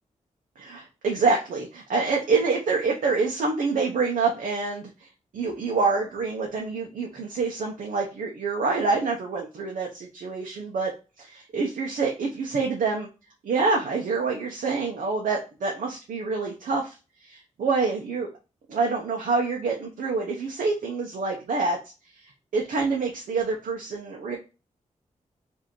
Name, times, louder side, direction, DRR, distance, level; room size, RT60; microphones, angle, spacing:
voice 1, 0.6-4.9 5.3-10.9 11.2-13.1 13.4-16.9 17.2-18.3 18.7-21.8 22.2-24.4, right 4 dB, 85° right, 0 dB, 0.7 m, -26 dB
5.1 x 2.7 x 2.9 m, 0.31 s
cardioid pair, 65°, 13 cm